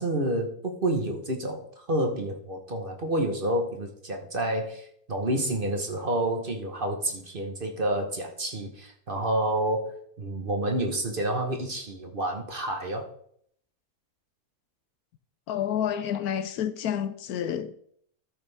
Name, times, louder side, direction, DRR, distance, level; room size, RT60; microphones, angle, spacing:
voice 1, 0.0-13.1, right 1 dB, 40° right, 1.3 m, -29 dB
voice 2, 15.5-17.7, left 9 dB, 75° left, 1.1 m, -29 dB
13.0 x 6.6 x 3.4 m
omnidirectional pair, 1.6 m